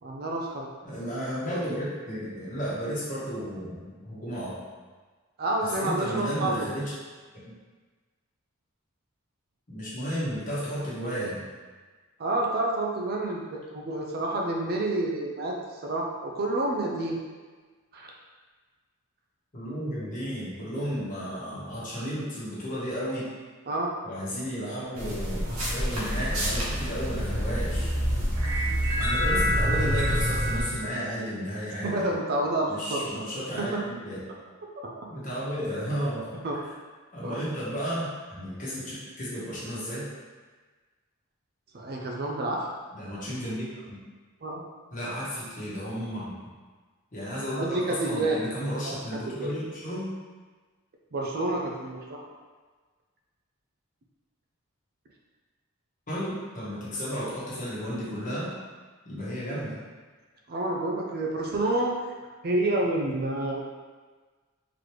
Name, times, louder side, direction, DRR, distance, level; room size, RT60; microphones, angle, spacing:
voice 1, 0.0-0.7 5.4-6.8 12.2-15.6 15.8-17.2 17.9-18.1 23.7-23.9 31.8-33.2 33.6-33.8 34.8-34.9 36.4-36.6 37.2-37.4 41.7-42.7 44.4-44.6 47.6-48.4 48.9-49.0 49.3-49.5 51.1-52.2 60.5-61.9 62.4-63.6, right 2 dB, 45° right, -1 dB, 0.5 m, -29 dB
voice 2, 0.8-4.7 5.7-6.9 7.4-7.5 9.7-11.4 19.5-23.3 24.0-27.9 29.0-32.1 32.6-34.2 35.1-36.3 37.1-40.1 42.9-44.0 44.9-46.3 47.1-50.1 56.1-58.5 59.0-59.8, equal, 40° left, -8 dB, 1.2 m, -33 dB
sound 1, 25.0-30.6, equal, 85° right, 1.1 m, -26 dB
3.9 x 3.1 x 3.1 m, 1.4 s
head